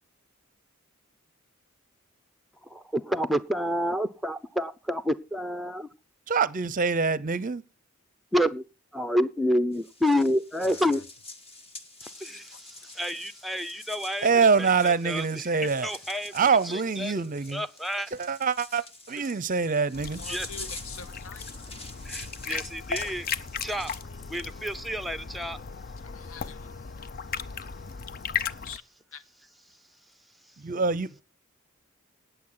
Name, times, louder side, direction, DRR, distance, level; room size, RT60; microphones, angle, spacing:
voice 1, 2.6-5.9 8.3-8.6 8.9-11.0 12.0-14.3 14.6-16.3 16.6-17.2 17.5-18.1 20.3-20.7 21.6-21.7 22.0-23.9 24.3-25.6, equal, ahead, 0.6 m, -29 dB
voice 2, 6.3-7.6 14.2-15.9 16.3-17.6 18.1-20.2 30.6-31.1, right 5 dB, 40° right, 0.6 m, -25 dB
sound 1, 9.7-24.0, left 2 dB, 30° left, 1.7 m, -46 dB
sound 2, 19.9-28.8, left 6 dB, 45° left, 0.5 m, -36 dB
voice 3, 20.2-21.4 26.0-26.7 28.6-28.8 29.1-29.2, left 7 dB, 75° left, 0.8 m, -44 dB
18.5 x 7.0 x 3.8 m
head